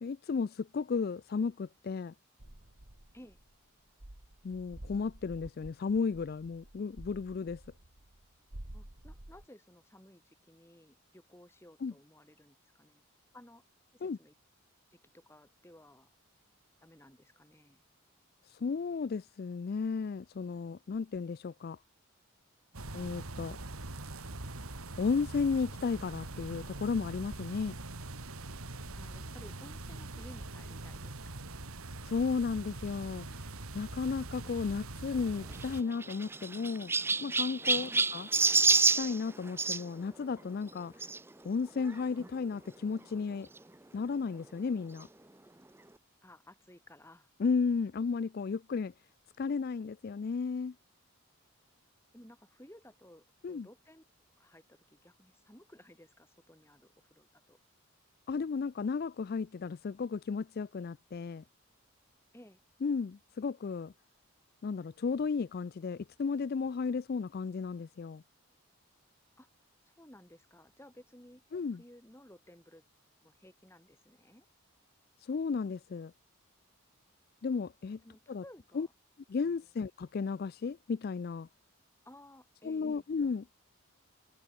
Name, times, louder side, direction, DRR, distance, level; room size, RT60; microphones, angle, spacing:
voice 1, 0.0-2.1 4.4-7.6 11.8-11.9 14.0-14.2 18.4-21.8 22.9-23.6 25.0-27.7 32.1-33.4 33.7-36.9 37.2-38.3 39.0-41.0 41.4-43.5 43.9-45.1 47.4-48.9 49.4-50.7 53.4-53.7 58.3-61.4 62.8-63.9 64.6-68.2 71.5-71.8 75.2-76.1 77.4-78.0 78.3-78.4 78.7-78.9 79.3-81.5 82.6-83.5, left 5 dB, 45° left, 0.3 m, -34 dB
sound 1, 2.4-9.5, right 1 dB, 60° right, 2.5 m, -50 dB
voice 2, 8.7-13.0 13.3-13.6 13.9-14.3 14.9-16.1 16.8-17.8 28.9-31.5 37.9-38.1 46.2-47.3 52.1-54.0 54.4-57.6 62.3-62.6 69.4-69.5 69.9-71.4 71.7-72.8 73.2-74.5 78.0-78.9 79.4-79.6 82.0-83.1, left 1 dB, 10° left, 4.5 m, -57 dB
sound 2, 22.7-35.8, right 2 dB, 80° right, 2.4 m, -43 dB
Chirp tweet, 35.5-39.8 41.0-41.2 41.9-42.0 42.2-42.3 43.6-43.7, right 4 dB, 10° right, 0.5 m, -28 dB
head